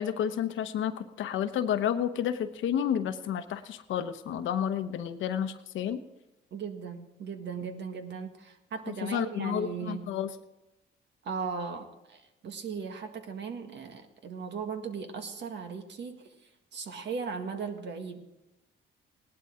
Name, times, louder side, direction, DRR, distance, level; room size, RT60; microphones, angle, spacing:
voice 1, 0.0-6.0 8.9-10.3, left 9 dB, 75° left, 9 dB, 1.0 m, -31 dB
voice 2, 6.5-10.1 11.2-18.3, right 5 dB, 65° right, 6 dB, 1.7 m, -38 dB
18.0 x 11.5 x 3.7 m, 0.97 s
cardioid pair, 90°, 20 cm